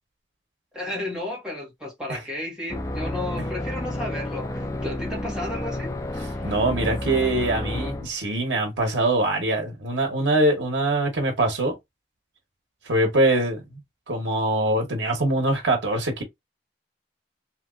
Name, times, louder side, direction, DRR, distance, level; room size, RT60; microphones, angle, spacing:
voice 1, 0.7-5.9, left 1 dB, 5° right, 1.4 m, -33 dB
sound 1, 2.7-8.1, left 1 dB, 20° left, 0.5 m, -30 dB
voice 2, 6.4-11.7 12.9-13.8 14.1-16.2, right 1 dB, 85° right, 1.0 m, -23 dB
3.0 x 2.9 x 2.5 m
head